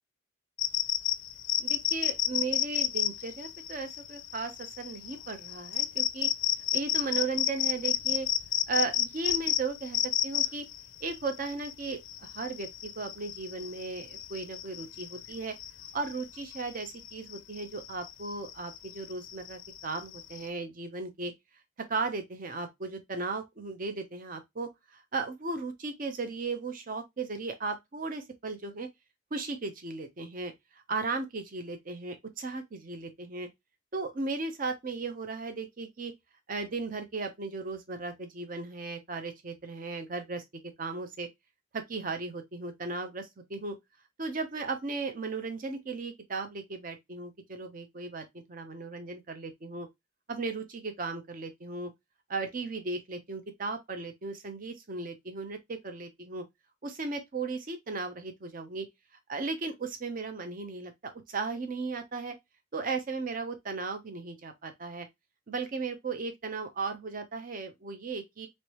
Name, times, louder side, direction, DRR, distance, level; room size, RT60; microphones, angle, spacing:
sound 1, 0.6-20.5, left 12 dB, 80° left, 0.4 m, -32 dB
voice 1, 1.6-6.3 6.7-8.3 8.7-10.6 11.0-15.5 15.9-21.3 21.9-28.9 29.3-30.5 30.9-33.5 33.9-36.1 36.5-40.4 40.8-41.3 41.7-43.8 44.2-49.9 50.3-51.9 52.3-56.4 56.8-58.9 59.3-62.3 62.7-65.1 65.5-68.5, right 3 dB, 45° right, 0.6 m, -36 dB
3.2 x 3.1 x 2.9 m
head